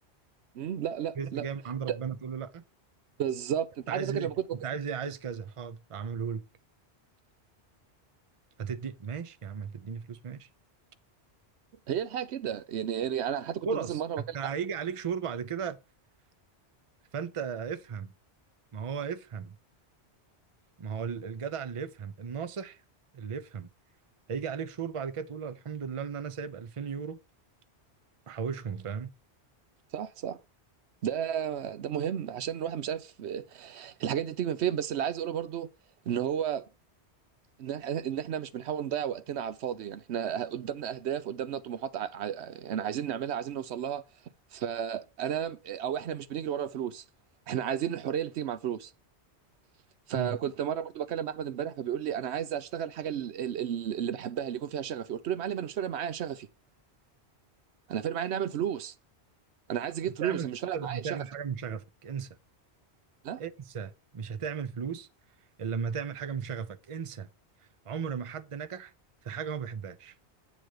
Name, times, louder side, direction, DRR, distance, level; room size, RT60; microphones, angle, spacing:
voice 1, 0.5-1.4 1.9-2.0 3.2-4.4 11.9-14.4 29.9-30.4 31.0-35.7 36.1-36.6 37.6-44.0 44.5-47.0 47.5-48.9 50.1-56.5 57.9-58.9 59.7-61.2 63.2-63.4, right 9 dB, 75° right, 0.9 m, -33 dB
voice 2, 1.2-2.6 3.9-6.4 8.6-10.5 13.6-15.8 17.1-18.1 18.7-19.6 20.8-22.8 23.1-23.7 24.3-27.2 28.3-29.1 50.1-50.4 60.2-60.5 60.7-62.4 63.4-65.1 65.6-67.3 67.8-68.9 69.2-70.1, right 6 dB, 35° right, 0.6 m, -35 dB
9.0 x 3.1 x 6.5 m
omnidirectional pair, 1.1 m